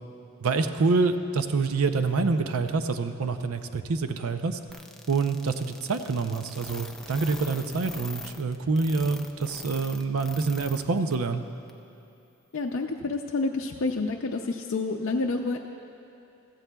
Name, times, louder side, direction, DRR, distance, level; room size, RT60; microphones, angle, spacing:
voice 1, 0.4-4.6 5.1-11.4, right 4 dB, 80° right, 9 dB, 0.6 m, -26 dB
sound 1, 4.7-10.8 11.1-11.2 11.7-11.8, left 2 dB, ahead, 0.4 m, -41 dB
voice 2, 12.5-15.6, left 3 dB, 60° left, 1 dB, 0.5 m, -28 dB
15.5 x 14.5 x 2.3 m, 2.7 s
head